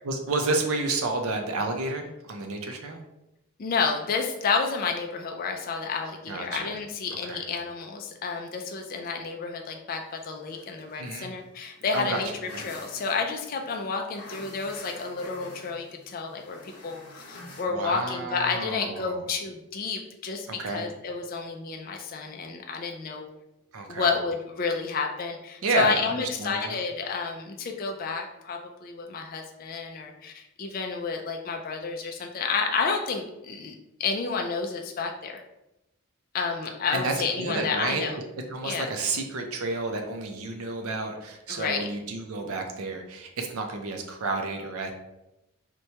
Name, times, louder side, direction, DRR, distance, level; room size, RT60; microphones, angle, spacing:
voice 1, 0.1-3.0 6.3-6.8 7.3-7.4 11.0-11.3 11.9-12.2 12.5-12.7 17.7-19.2 20.5-20.9 23.7-24.1 25.6-26.8 36.9-38.1 38.5-44.9, right 3 dB, 70° right, 4 dB, 0.5 m, -30 dB
voice 2, 3.6-23.3 23.9-33.7 34.0-35.4 36.3-38.2 38.6-38.9 41.5-41.9, left 5 dB, 40° left, 3 dB, 0.3 m, -30 dB
sound 1, 10.0-17.6, left 2 dB, 85° left, 0.8 m, -47 dB
4.4 x 2.2 x 2.7 m, 0.91 s
head